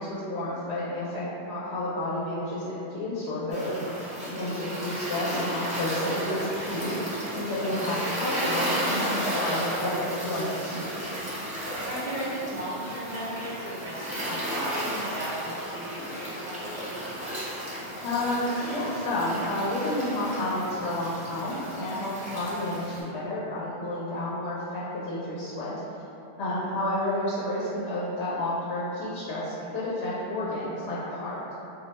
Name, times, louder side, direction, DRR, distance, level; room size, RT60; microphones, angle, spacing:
voice 1, 0.0-3.8 4.2-6.9 7.3-11.0 18.0-25.7 26.4-31.4, left 1 dB, 85° left, -9 dB, 0.9 m, -30 dB
sound 1, 3.5-23.0, equal, 10° right, 0.4 m, -33 dB
voice 2, 4.2-4.5 11.8-17.1 26.5-26.7, right 1 dB, 65° right, -13 dB, 0.9 m, -36 dB
sound 2, 6.0-6.2 6.5-7.0 7.3-7.4 8.0-8.4 8.9-9.1 9.8-10.3 11.0-11.2 11.5-11.9, left 2 dB, 55° left, 0.6 m, -51 dB
2.3 x 2.1 x 3.9 m, 2.9 s
omnidirectional pair, 1.1 m